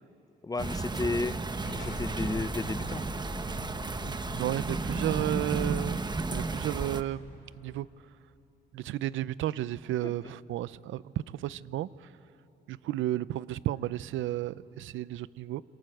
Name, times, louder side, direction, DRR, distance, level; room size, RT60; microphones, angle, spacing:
voice 1, 0.4-1.4 1.7-3.0 10.0-10.1, left 3 dB, 20° left, 16 dB, 0.6 m, -33 dB
sound 1, 0.6-7.0, right 3 dB, 20° right, 1.1 m, -33 dB
Explosion, 1.6-7.1, left 4 dB, 65° left, 4.0 m, -46 dB
voice 2, 4.0-6.0 6.3-7.3 7.6-7.9 8.7-11.0 11.3-11.9 12.7-15.6, right 13 dB, 80° right, 18 dB, 0.6 m, -33 dB
27.0 x 26.0 x 7.9 m, 3.0 s
cardioid pair, 90°, 20 cm